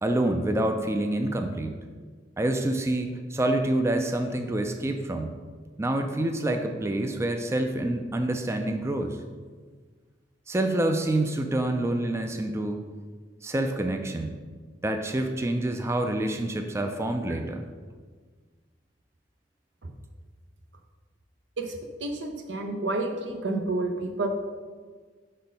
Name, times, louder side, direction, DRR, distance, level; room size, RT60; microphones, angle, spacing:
voice 1, 0.0-1.8 2.4-5.4 5.8-9.2 10.5-12.8 13.4-14.4 14.8-17.6, right 1 dB, 15° right, 6 dB, 0.3 m, -27 dB
voice 2, 22.0-24.3, right 2 dB, 85° right, 4 dB, 0.7 m, -29 dB
5.1 x 4.4 x 5.2 m, 1.5 s
head